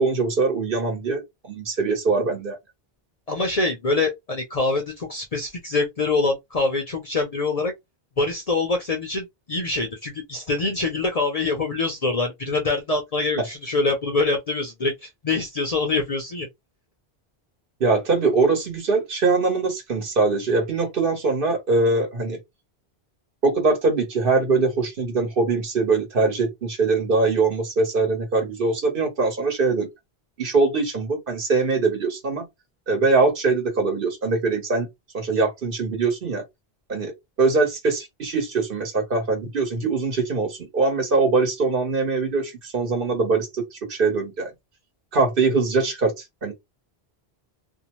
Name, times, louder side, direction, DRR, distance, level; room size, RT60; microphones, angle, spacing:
voice 1, 0.0-2.6 13.4-13.5 17.8-22.4 23.4-29.9 30.4-32.4 32.9-34.9 35.1-36.4 36.9-37.1 37.4-44.5 45.1-46.5, right 3 dB, 60° right, 1.1 m, -22 dB
voice 2, 3.3-7.7 8.2-16.5, left 3 dB, 45° left, 0.5 m, -25 dB
2.6 x 2.0 x 2.9 m
omnidirectional pair, 1.1 m